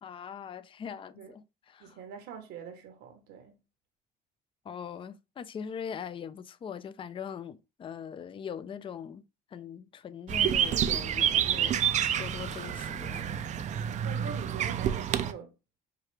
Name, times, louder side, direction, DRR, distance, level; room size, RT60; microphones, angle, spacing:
voice 1, 0.0-2.0 4.6-9.2 9.5-13.3, left 7 dB, 30° left, 0.4 m, -41 dB
voice 2, 1.8-3.6 13.8-15.5, right 7 dB, 85° right, 1.1 m, -44 dB
sound 1, 10.3-15.3, right 9 dB, 45° right, 0.4 m, -28 dB
4.7 x 2.3 x 3.2 m
cardioid pair, 110°, 17 cm